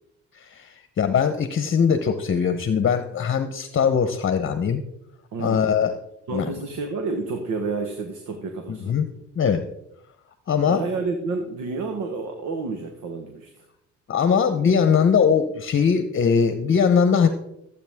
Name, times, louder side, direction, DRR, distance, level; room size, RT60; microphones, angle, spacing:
voice 1, 0.3-4.8 5.4-6.0 6.3-6.5 8.7-9.1 9.4-9.6 10.5-10.8 14.1-17.3, left 6 dB, 40° left, 9 dB, 0.9 m, -21 dB
voice 2, 5.3-5.7 6.3-9.0 10.6-13.5, right 4 dB, 80° right, 5 dB, 1.5 m, -29 dB
15.0 x 8.2 x 3.6 m, 0.82 s
cardioid pair, 90°, 30 cm